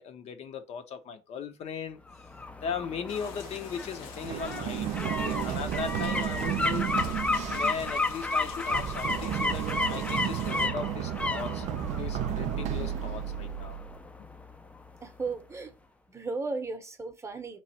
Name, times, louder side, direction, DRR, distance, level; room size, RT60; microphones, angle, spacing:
voice 1, 0.0-2.0 2.6-6.8 7.5-11.7 12.0-13.8, left 6 dB, 50° left, 0.6 m, -38 dB
sound 1, 2.1-14.9 15.3-15.4, left 3 dB, 10° left, 0.4 m, -33 dB
sound 2, 3.1-10.7, left 5 dB, 85° left, 1.0 m, -47 dB
Run, 4.2-14.0, right 10 dB, 60° right, 0.4 m, -33 dB
voice 2, 15.0-15.7 16.1-17.6, right 3 dB, 20° right, 0.8 m, -35 dB
3.0 x 2.4 x 4.0 m
cardioid pair, 105°, 14 cm